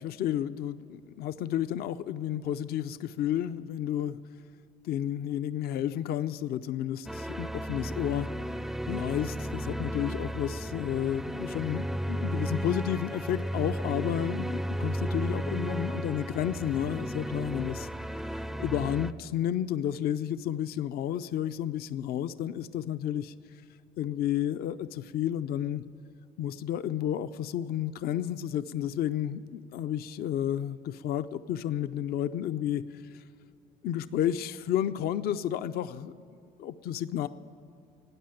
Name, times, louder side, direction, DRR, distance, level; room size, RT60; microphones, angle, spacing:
voice 1, 0.0-4.2 4.8-8.3 8.9-17.9 18.3-23.3 24.0-25.8 26.4-32.8 33.8-36.1 36.6-37.3, left 10 dB, 65° left, 12 dB, 0.5 m, -31 dB
sound 1, 7.1-19.1, equal, ahead, 0.4 m, -34 dB
13.5 x 9.6 x 8.8 m, 2.6 s
cardioid pair, 110°, 17 cm